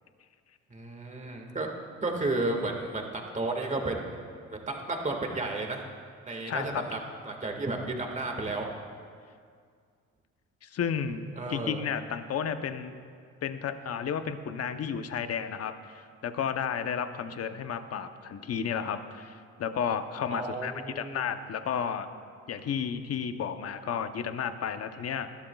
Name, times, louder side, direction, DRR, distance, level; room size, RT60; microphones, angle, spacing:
voice 1, 0.7-1.7 2.0-4.2 4.5-5.8 6.3-7.0 7.2-8.7 11.4-11.8 20.3-21.2, right 2 dB, 25° right, 2 dB, 1.8 m, -32 dB
voice 2, 6.5-6.8 10.6-11.2 11.5-12.9 13.4-22.1 22.5-25.4, left 7 dB, 55° left, 9 dB, 0.8 m, -32 dB
20.0 x 13.0 x 2.3 m, 2.1 s
cardioid pair, 90°, 30 cm